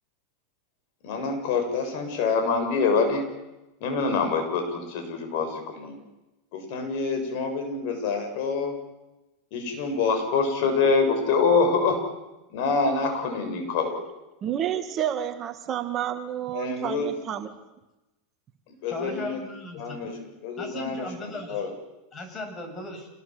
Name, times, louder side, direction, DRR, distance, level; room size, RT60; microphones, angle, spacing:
voice 1, 1.0-3.2 3.8-6.0 6.5-8.7 9.5-12.0 12.5-14.0 16.5-17.1 18.8-19.4 19.7-21.7, left 4 dB, 60° left, 5 dB, 7.4 m, -26 dB
voice 2, 14.4-17.5, right 10 dB, 35° right, 7 dB, 2.0 m, -29 dB
voice 3, 18.9-20.1 20.6-21.7 22.1-23.1, left 1 dB, 25° left, 4 dB, 7.6 m, -37 dB
27.5 x 20.0 x 7.9 m, 1.0 s
supercardioid pair, 130°, 0 cm